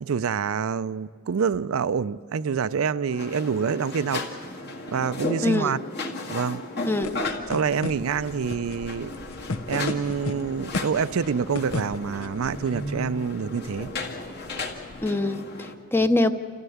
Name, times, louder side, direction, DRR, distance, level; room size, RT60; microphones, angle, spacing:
voice 1, 0.0-4.2 4.9-5.8 6.3-6.6 7.5-9.1 9.7-13.9, right 6 dB, 75° right, 0.4 m, -26 dB
sound 1, 3.1-15.7, left 2 dB, 50° left, 2.0 m, -35 dB
voice 2, 5.4-5.7 6.9-7.1 15.0-16.3, left 2 dB, 10° left, 0.7 m, -23 dB
sound 2, 7.0-15.1, left 2 dB, 80° left, 0.8 m, -36 dB
29.0 x 14.5 x 7.1 m
head